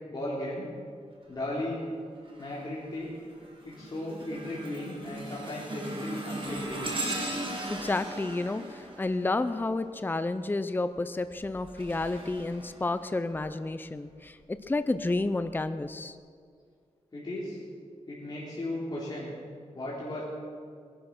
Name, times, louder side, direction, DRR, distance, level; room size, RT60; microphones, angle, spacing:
voice 1, 0.1-0.7 1.3-1.8 2.4-3.1 3.6-6.9 17.1-17.6 18.1-19.3 19.7-20.2, left 1 dB, 35° left, -8 dB, 3.5 m, -36 dB
sound 1, 2.3-2.7 3.2-10.0 11.2-13.4 14.1-14.2 15.1-15.2, right 1 dB, 45° right, 2.9 m, -38 dB
voice 2, 7.7-16.1, left 2 dB, 15° left, 11 dB, 0.5 m, -31 dB
20.0 x 11.5 x 6.2 m, 2.1 s
wide cardioid pair, 135°, 12 cm